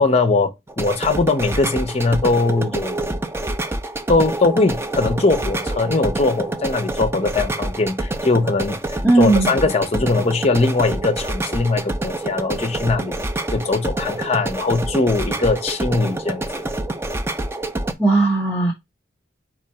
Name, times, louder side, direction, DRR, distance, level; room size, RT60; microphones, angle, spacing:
voice 1, 0.0-3.2 4.1-13.2 13.5-16.6, left 3 dB, 35° left, 0.6 m, -20 dB
sound 1, 0.7-17.9, right 2 dB, 15° right, 0.4 m, -27 dB
voice 2, 9.0-9.5 18.0-18.7, right 2 dB, 10° left, 1.1 m, -16 dB
4.6 x 2.5 x 4.2 m
head